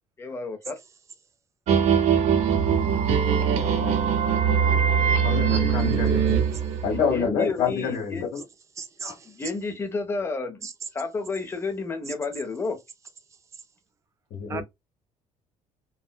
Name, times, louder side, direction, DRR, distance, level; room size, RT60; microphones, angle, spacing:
voice 1, 0.2-0.8 6.9-8.3 9.3-10.7 10.9-12.8, left 3 dB, 20° left, 0.6 m, -31 dB
sound 1, 1.7-7.3, right 7 dB, 65° right, 0.6 m, -22 dB
voice 2, 3.6-4.2 5.2-6.4 6.8-8.4 9.0-9.1 14.3-14.6, left 6 dB, 60° left, 1.3 m, -28 dB
voice 3, 8.8-9.3 10.6-10.7 14.5-14.6, right 5 dB, 25° right, 0.4 m, -36 dB
3.6 x 2.1 x 2.3 m
cardioid pair, 155°, 13 cm